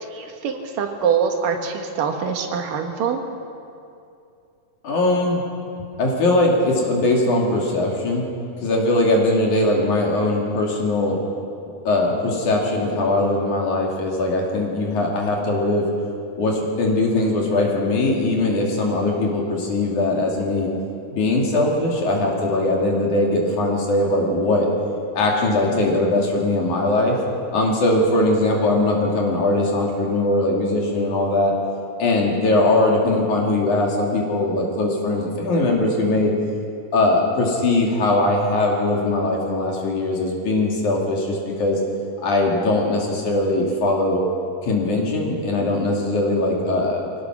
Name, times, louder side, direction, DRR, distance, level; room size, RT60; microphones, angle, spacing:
voice 1, 0.1-3.2, right 6 dB, 80° right, 4 dB, 3.2 m, -24 dB
voice 2, 4.8-5.4 6.0-8.3 8.6-11.2 11.9-15.9 16.4-20.7 21.1-24.7 25.2-27.2 27.5-31.5 32.0-36.3 36.9-41.8 42.2-44.2 44.6-47.0, left 2 dB, 65° left, -1 dB, 4.0 m, -20 dB
23.5 x 18.0 x 6.1 m, 2.6 s
omnidirectional pair, 3.8 m